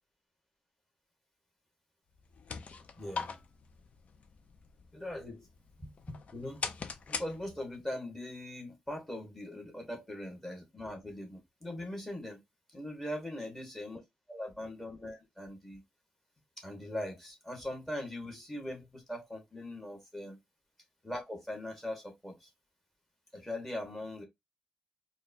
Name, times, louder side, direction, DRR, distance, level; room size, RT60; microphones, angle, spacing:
sound 1, 2.1-7.9, left 5 dB, 50° left, 0.5 m, -43 dB
voice 1, 3.0-3.3 4.9-5.4 5.8-12.4 12.7-14.0 14.3-15.8 16.6-20.4 21.0-22.5 23.3-24.2, left 1 dB, 10° left, 1.3 m, -41 dB
4.7 x 2.2 x 2.6 m
wide cardioid pair, 145°, 3 cm